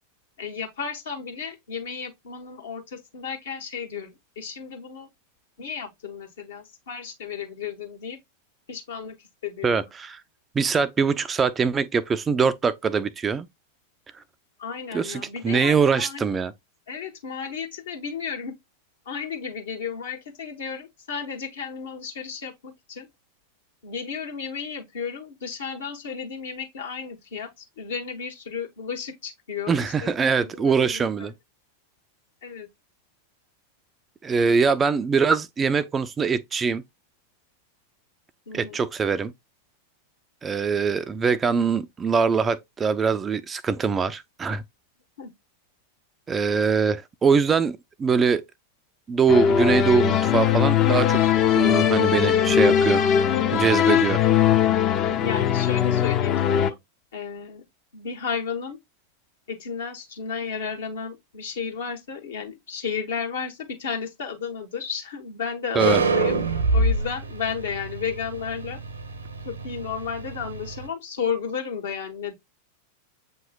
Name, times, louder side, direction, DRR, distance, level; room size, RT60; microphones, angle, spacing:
voice 1, 0.4-5.1 5.6-8.2 8.7-9.2 9.4-9.8 14.6-16.2 16.9-18.6 19.1-23.1 23.8-30.1 30.5-31.3 32.4-32.7 38.5-38.8 45.2-45.3 55.2-56.7 57.1-57.6 57.9-58.8 59.5-66.4 66.7-68.8 69.4-72.3, left 6 dB, 60° left, 1.2 m, -33 dB
voice 2, 9.6-10.2 10.5-13.5 14.9-16.5 29.7-31.3 34.2-36.8 38.5-39.3 40.4-44.6 46.3-48.4 49.1-51.2 51.5-53.0 53.5-54.2 65.8-66.0, right 5 dB, 20° right, 0.3 m, -23 dB
sound 1, 49.3-56.7, left 9 dB, 30° left, 0.5 m, -20 dB
sound 2, 65.8-70.9, right 2 dB, 70° right, 0.7 m, -26 dB
7.5 x 2.9 x 2.3 m
figure-of-eight pair, 90°, 0 cm